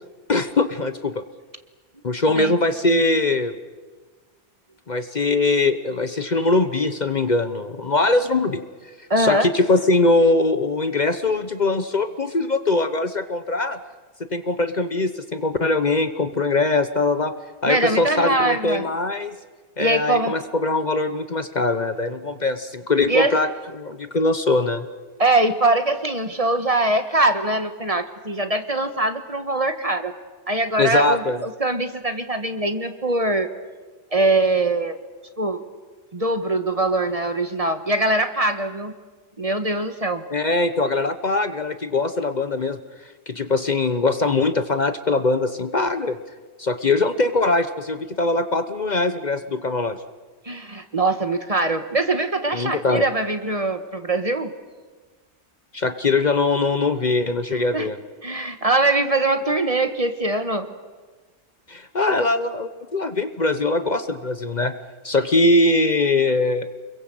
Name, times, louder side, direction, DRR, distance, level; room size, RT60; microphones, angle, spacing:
voice 1, 0.3-1.2 2.0-3.5 4.9-8.6 9.2-13.8 14.2-17.3 17.6-19.3 19.8-23.5 23.8-24.9 30.8-31.4 40.3-42.8 43.3-46.2 46.6-50.0 52.5-53.0 55.7-58.0 61.7-64.7 65.0-66.7, left 2 dB, 40° left, 11 dB, 1.0 m, -21 dB
voice 2, 9.1-9.5 17.7-18.9 19.8-20.4 23.1-23.3 25.2-30.1 30.5-33.5 34.1-35.0 35.4-35.6 36.1-38.9 39.4-40.2 50.4-54.5 57.7-57.9 58.2-60.7, right 2 dB, 30° right, 8 dB, 1.4 m, -22 dB
29.0 x 22.0 x 7.8 m, 1.4 s
omnidirectional pair, 1.2 m